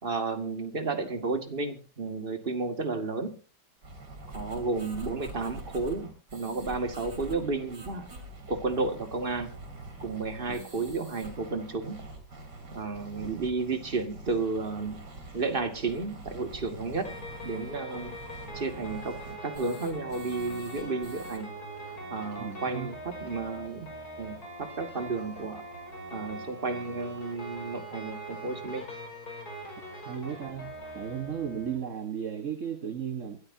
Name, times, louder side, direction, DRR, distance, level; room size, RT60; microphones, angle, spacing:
voice 1, 0.0-3.4 4.3-8.1 8.5-9.5 10.0-12.0 12.7-15.0 15.3-18.2 18.5-21.5 22.1-23.9 24.2-25.7 26.1-28.8, right 3 dB, 30° right, 8 dB, 2.2 m, -32 dB
sound 1, 3.8-21.4, right 2 dB, 75° right, 5.0 m, -45 dB
sound 2, 17.0-31.8, right 1 dB, 60° left, 6.0 m, -42 dB
voice 2, 22.4-22.9 30.1-33.4, right 8 dB, 50° right, 9 dB, 1.7 m, -35 dB
24.0 x 13.5 x 2.8 m, 0.33 s
omnidirectional pair, 1.8 m